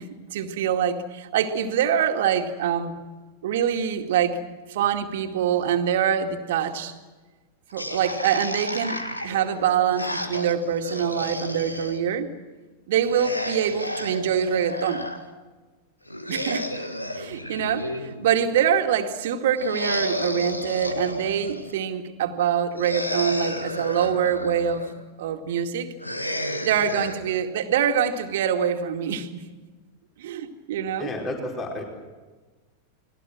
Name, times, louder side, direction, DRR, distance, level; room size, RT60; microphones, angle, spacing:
voice 1, 0.0-2.9 3.4-4.4 4.7-6.9 7.7-12.3 12.9-15.1 16.3-16.7 17.2-25.9 26.6-29.4 30.2-31.1, right 8 dB, 55° right, 5 dB, 2.2 m, -25 dB
sound 1, 7.7-12.0 13.0-15.2 16.1-18.4 19.6-21.8 22.8-24.9 26.0-27.1, equal, 85° left, 1.8 m, -31 dB
voice 2, 31.0-31.8, left 1 dB, 25° left, 1 dB, 4.8 m, -31 dB
29.5 x 21.0 x 6.3 m, 1.3 s
figure-of-eight pair, 90°, 0 cm